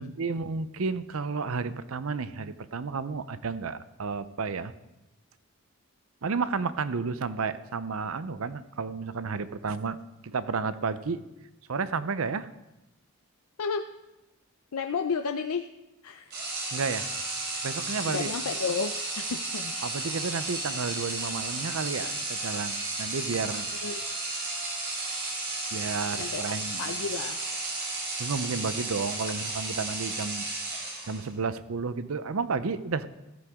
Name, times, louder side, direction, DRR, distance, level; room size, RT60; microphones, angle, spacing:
voice 1, 0.0-4.7 6.2-10.0 10.2-11.2 11.7-12.5 16.7-17.1 17.6-18.3 19.8-23.7 25.7-26.9 28.2-33.1, right 4 dB, 70° right, 14 dB, 0.6 m, -32 dB
voice 2, 14.7-15.7 16.0-16.4 18.0-19.7 23.8-24.0 26.2-26.4 26.8-27.4, left 5 dB, 85° left, 6 dB, 0.5 m, -32 dB
sound 1, 16.3-31.4, right 2 dB, 45° right, 3.7 m, -33 dB
14.5 x 13.0 x 3.6 m, 0.98 s
head